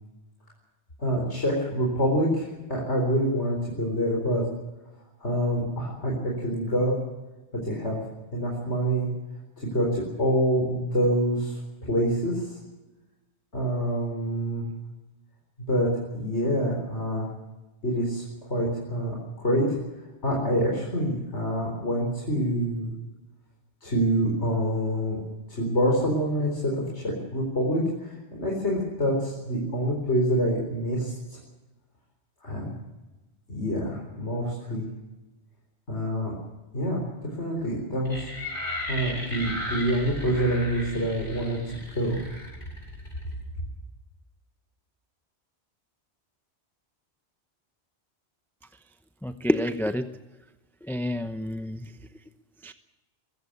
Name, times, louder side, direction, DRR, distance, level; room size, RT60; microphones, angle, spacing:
voice 1, 1.0-4.4 5.2-7.0 7.5-8.0 8.3-9.1 9.6-12.6 13.5-14.6 15.7-17.3 17.8-19.8 20.2-22.9 23.8-25.2 25.5-31.4 32.4-32.7 33.5-34.8 35.9-36.3 36.7-38.3 38.9-42.2, equal, 75° left, -2 dB, 4.7 m, -26 dB
sound 1, 38.0-43.3, left 1 dB, 45° left, 8.2 m, -36 dB
voice 2, 49.2-50.1 50.8-51.9 52.6-52.7, left 1 dB, ahead, 9 dB, 0.7 m, -28 dB
22.5 x 15.5 x 8.1 m, 1.1 s
omnidirectional pair, 1.2 m